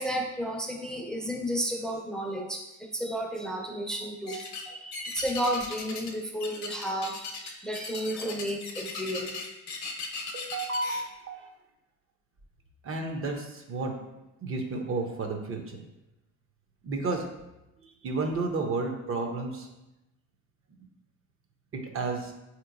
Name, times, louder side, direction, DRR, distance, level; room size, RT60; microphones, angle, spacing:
voice 1, 0.0-2.6 2.9-9.4, equal, ahead, 0 dB, 0.4 m, -32 dB
sound 1, 4.3-4.6 4.9-6.1 6.4-11.0, left 4 dB, 65° left, 0.7 m, -37 dB
voice 2, 10.3-11.5 12.8-13.9 14.4-15.8 16.8-17.3 17.8-19.7 20.8-20.9 21.7-22.3, right 3 dB, 45° right, 3 dB, 0.6 m, -32 dB
4.1 x 2.9 x 2.5 m, 0.94 s
cardioid pair, 90°, 30 cm